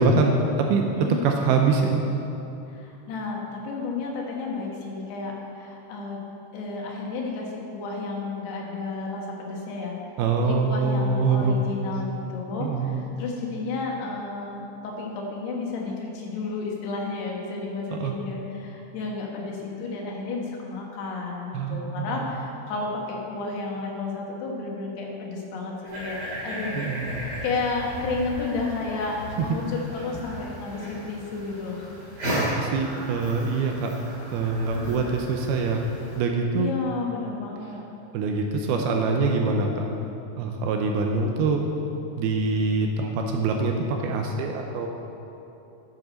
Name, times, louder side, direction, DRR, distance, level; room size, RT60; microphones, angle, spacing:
voice 1, 0.0-0.8 1.2-2.0 10.2-11.6 12.6-13.0 17.9-18.1 21.5-22.3 26.7-27.2 29.4-29.5 32.3-34.0 34.3-35.8 36.2-36.7 38.1-39.9 40.4-41.7 42.2-44.9, right 4 dB, 80° right, 2 dB, 2.4 m, -24 dB
voice 2, 2.7-6.2 6.5-10.0 10.4-26.8 27.1-31.9 33.6-33.8 34.8-35.0 36.6-37.8, left 3 dB, 80° left, -1 dB, 3.4 m, -32 dB
sound 1, 25.8-36.2, equal, 30° right, 2.7 m, -35 dB
9.7 x 7.7 x 6.3 m, 2.9 s
omnidirectional pair, 4.8 m